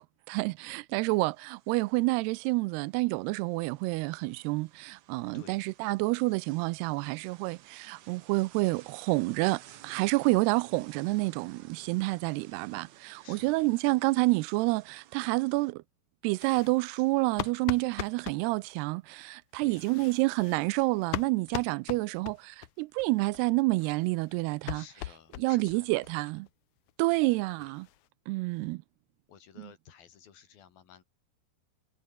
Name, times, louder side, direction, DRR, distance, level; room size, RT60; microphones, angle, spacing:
voice 1, 0.0-15.8 16.2-24.8 25.4-26.4 27.0-27.9 28.3-28.8, right 23 dB, 85° right, 2.5 m, -28 dB
sound 1, 0.9-15.7, right 13 dB, 70° right, 1.8 m, -56 dB
voice 2, 13.2-13.8 19.6-20.2 24.7-26.3 27.1-27.7 29.3-31.0, left 8 dB, 65° left, 4.2 m, -54 dB
sound 2, 16.4-18.4 19.6-22.7 23.0-23.1 23.3-23.4 23.7-25.8 26.0-26.1 26.5-26.6 26.9-27.0 27.2-28.1, left 15 dB, 85° left, 1.7 m, -40 dB
omnidirectional pair, 4.7 m